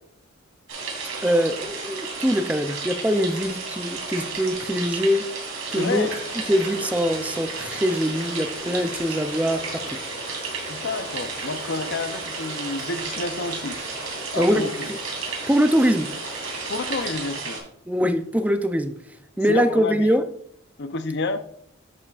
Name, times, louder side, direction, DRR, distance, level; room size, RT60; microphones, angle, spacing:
sound 1, 0.7-17.6, right 4 dB, 70° right, 3.0 m, -33 dB
voice 1, 1.2-5.3 5.7-6.1 6.5-9.8 14.4-14.7 15.5-16.1 17.9-18.9 19.4-20.2, equal, 5° right, 9 dB, 0.5 m, -22 dB
voice 2, 5.7-6.2 10.7-13.8 14.3-14.9 16.7-17.6 19.5-20.2 20.8-21.4, left 3 dB, 55° left, 10 dB, 0.6 m, -29 dB
sound 2, 5.7-17.1, left 2 dB, 30° left, 2.2 m, -41 dB
11.0 x 7.1 x 2.5 m, 0.70 s
head